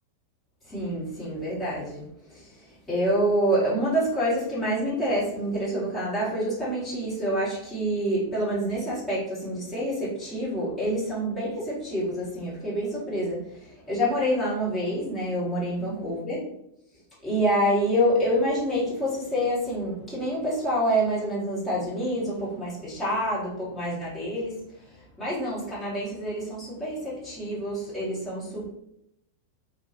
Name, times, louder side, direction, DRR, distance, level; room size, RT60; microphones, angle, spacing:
voice 1, 0.6-16.4 17.2-28.7, equal, 10° left, -12 dB, 1.4 m, -27 dB
2.6 x 2.2 x 2.8 m, 0.80 s
figure-of-eight pair, 90°, 0 cm